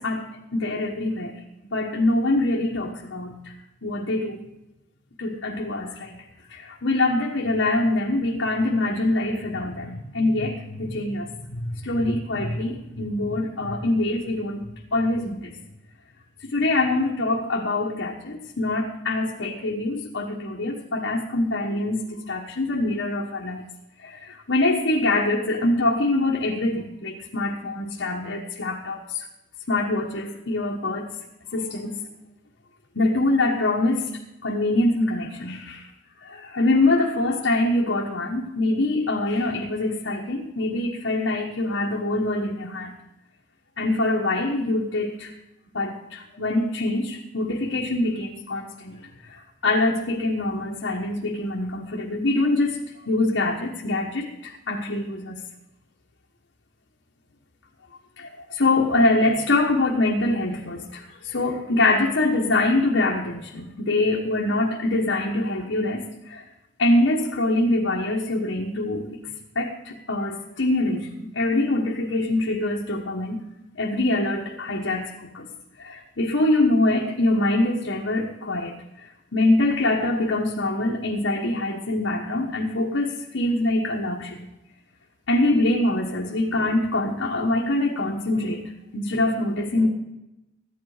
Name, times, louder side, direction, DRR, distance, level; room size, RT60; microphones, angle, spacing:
voice 1, 0.0-1.4 1.7-3.5 3.8-4.4 5.2-6.2 6.5-15.5 16.4-23.6 24.0-29.3 29.7-31.1 31.5-32.0 32.9-35.9 36.2-42.9 43.8-45.3 45.7-49.0 49.2-52.8 53.0-55.4 58.2-66.4 66.8-69.2 69.5-73.4 73.8-75.5 75.8-84.4 85.3-88.6 88.9-89.9, left 2 dB, 80° left, -2 dB, 1.4 m, -24 dB
14.5 x 10.5 x 5.0 m, 0.93 s
head